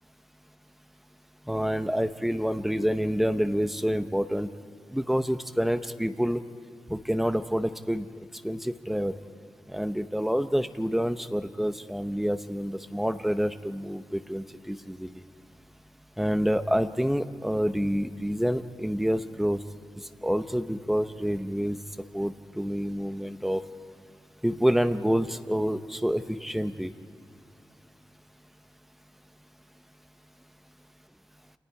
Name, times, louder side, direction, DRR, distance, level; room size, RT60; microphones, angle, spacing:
voice 1, 1.5-4.5 4.9-6.4 6.9-8.1 8.4-9.2 9.7-15.2 16.2-19.6 20.2-21.8 22.1-23.6 24.4-26.9, equal, 5° right, 9 dB, 0.8 m, -27 dB
28.5 x 28.0 x 4.8 m, 2.4 s
wide cardioid pair, 165°, 8 cm